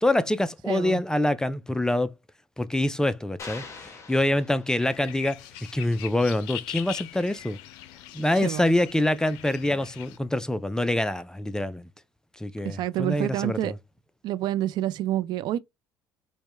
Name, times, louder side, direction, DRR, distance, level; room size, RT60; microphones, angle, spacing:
voice 1, 0.0-2.1 2.6-5.4 5.7-7.6 8.1-11.9 12.4-13.7, left 1 dB, 10° left, 0.4 m, -25 dB
voice 2, 0.7-1.0 8.4-8.7 12.6-13.7 14.2-15.6, right 13 dB, 65° right, 0.4 m, -28 dB
sound 1, 3.4-5.1, left 4 dB, 35° left, 1.0 m, -43 dB
sound 2, 4.8-10.2, left 13 dB, 85° left, 0.4 m, -41 dB
4.7 x 2.2 x 3.2 m
supercardioid pair, 90°, 8 cm